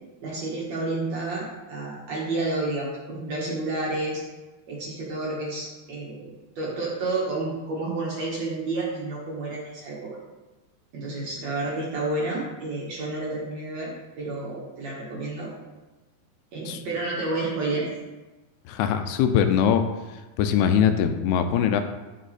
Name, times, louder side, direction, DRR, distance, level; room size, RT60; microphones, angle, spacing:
voice 1, 0.2-4.2 4.7-6.3 6.6-10.2 10.9-15.5 16.5-17.9, right 2 dB, 55° right, -4 dB, 2.2 m, -30 dB
voice 2, 18.7-19.8 20.4-21.8, left 8 dB, 85° left, 8 dB, 2.7 m, -21 dB
9.7 x 6.5 x 4.2 m, 1.2 s
omnidirectional pair, 4.6 m